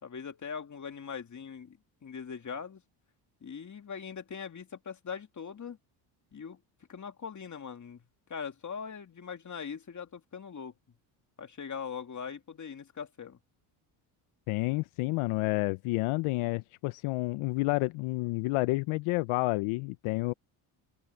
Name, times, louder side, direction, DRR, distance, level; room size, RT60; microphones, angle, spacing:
voice 1, 0.0-2.8 3.4-5.8 6.3-6.6 6.9-8.0 8.3-10.7 11.4-13.4, left 6 dB, 35° left, 2.8 m, -41 dB
voice 2, 14.5-20.3, left 22 dB, 80° left, 0.8 m, -30 dB
open air
supercardioid pair, 85°, 49 cm